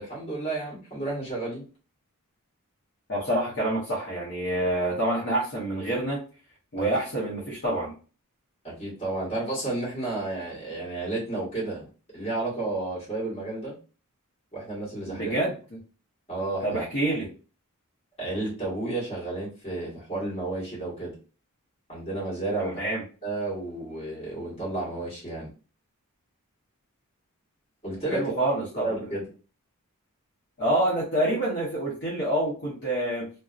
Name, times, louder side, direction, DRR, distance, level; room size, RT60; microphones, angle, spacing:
voice 1, 0.0-1.6 6.8-6.9 8.6-13.8 14.5-15.4 16.3-16.8 18.2-21.1 21.9-22.8 23.2-25.5 27.8-29.2, right 2 dB, 25° left, -7 dB, 1.3 m, -32 dB
voice 2, 3.1-6.2 6.7-7.9 15.1-15.5 16.6-17.3 22.6-23.0 28.1-28.9 30.6-33.3, right 1 dB, 50° left, -6 dB, 0.8 m, -27 dB
2.6 x 2.0 x 2.4 m, 0.36 s
head